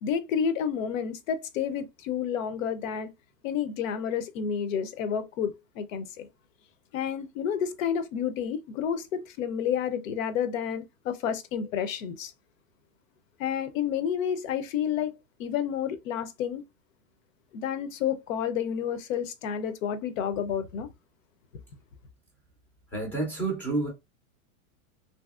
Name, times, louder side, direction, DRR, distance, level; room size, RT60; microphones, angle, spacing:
voice 1, 0.0-3.1 3.4-6.3 6.9-12.3 13.4-15.1 15.4-16.6 17.5-20.9, left 8 dB, 60° left, 0.6 m, -30 dB
voice 2, 22.9-23.9, right 3 dB, 5° left, 0.4 m, -29 dB
2.7 x 2.7 x 2.3 m
supercardioid pair, 145°, 44 cm